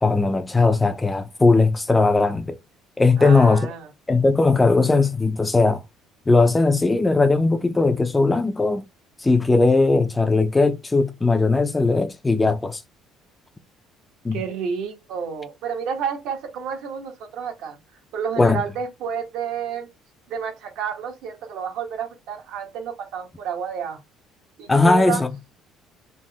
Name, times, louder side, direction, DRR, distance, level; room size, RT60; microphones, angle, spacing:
voice 1, 0.0-2.6 3.0-3.7 4.1-5.8 6.3-8.8 9.2-12.8 14.2-14.4 18.4-18.6 24.7-25.4, left 3 dB, 15° left, 0.4 m, -18 dB
voice 2, 3.2-3.9 14.3-17.8 18.1-19.9 20.3-24.0 24.6-25.2, right 7 dB, 70° right, 1.0 m, -30 dB
3.3 x 2.1 x 2.8 m
cardioid pair, 125°, 0 cm